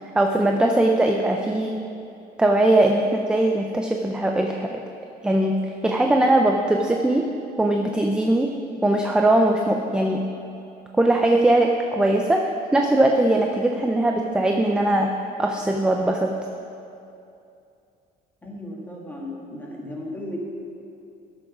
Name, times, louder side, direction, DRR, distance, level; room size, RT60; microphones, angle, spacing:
voice 1, 0.1-1.7 2.4-4.8 5.2-7.2 7.6-8.5 8.8-10.2 11.0-12.4 12.7-15.1 15.4-16.3, right 1 dB, 5° right, 2 dB, 0.4 m, -20 dB
voice 2, 18.4-20.4, left 1 dB, 10° left, -3 dB, 1.8 m, -35 dB
13.5 x 6.3 x 5.9 m, 2.7 s
cardioid pair, 165°, 17 cm